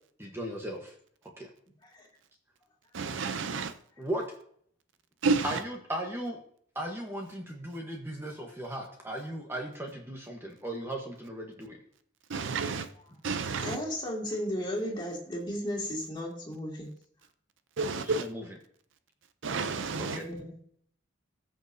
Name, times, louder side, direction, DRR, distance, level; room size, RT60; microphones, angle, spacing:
voice 1, 0.2-0.9 1.4-1.5 4.0-4.2 5.4-6.4 6.7-11.8 18.0-18.4 20.1-20.2, right 1 dB, 10° right, 1.1 m, -37 dB
voice 2, 2.9-3.7 5.2-5.6 12.3-12.9 13.2-13.8 17.8-18.3 19.4-20.2, right 4 dB, 65° right, 0.6 m, -30 dB
voice 3, 13.6-16.9 20.0-20.6, equal, 20° left, 2.4 m, -35 dB
19.0 x 6.5 x 2.7 m
head